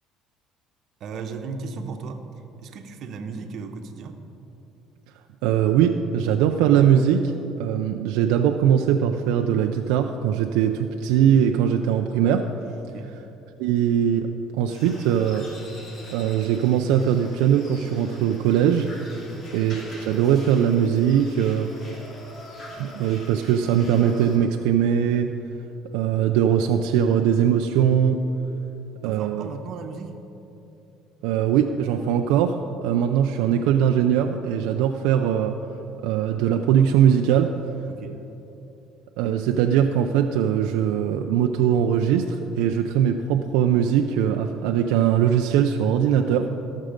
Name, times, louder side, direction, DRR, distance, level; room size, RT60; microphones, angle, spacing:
voice 1, 1.0-2.3 2.6-4.2 12.8-13.1 19.2-19.5 29.0-30.2 37.9-38.2, right 4 dB, 60° right, 6 dB, 1.0 m, -36 dB
voice 2, 5.4-7.3 7.6-12.5 13.6-15.5 16.1-18.9 19.5-21.7 22.8-25.3 25.9-28.2 29.0-29.5 31.2-35.6 36.0-37.5 39.2-46.5, right 9 dB, 85° right, 4 dB, 0.5 m, -21 dB
sound 1, 14.7-24.4, left 1 dB, 50° left, 2.9 m, -44 dB
17.0 x 6.4 x 5.2 m, 3.0 s
cardioid pair, 100°, 0 cm